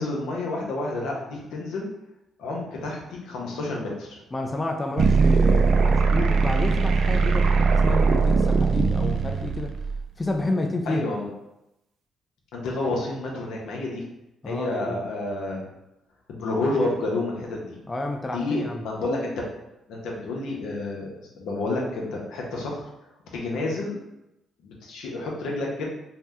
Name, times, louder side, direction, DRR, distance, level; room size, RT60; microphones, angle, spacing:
voice 1, 0.0-1.9 2.4-4.2 10.9-11.3 12.5-14.0 14.5-15.7 16.3-17.8 18.3-19.4 19.9-21.1 21.4-22.8 23.3-24.0 24.6-25.8, left 2 dB, 85° left, -2 dB, 0.7 m, -29 dB
voice 2, 4.3-9.8 10.2-11.0 14.4-15.0 17.9-18.8, left 2 dB, 20° left, 3 dB, 0.3 m, -30 dB
sound 1, 5.0-10.0, right 4 dB, 65° right, 0.3 m, -20 dB
2.7 x 2.1 x 3.4 m, 0.89 s
cardioid pair, 90°, 0 cm